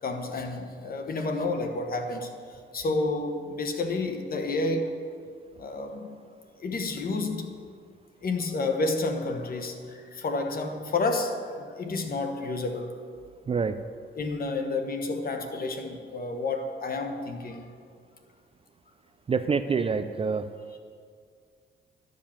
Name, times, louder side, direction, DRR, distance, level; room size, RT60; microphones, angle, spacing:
voice 1, 0.0-4.9 5.6-6.1 6.6-7.5 8.2-12.9 14.1-17.7 20.7-20.8, left 3 dB, 45° left, 5 dB, 1.2 m, -30 dB
voice 2, 19.3-20.5, right 5 dB, 30° right, 10 dB, 0.4 m, -26 dB
11.5 x 5.2 x 7.2 m, 2.1 s
cardioid pair, 115°, 20 cm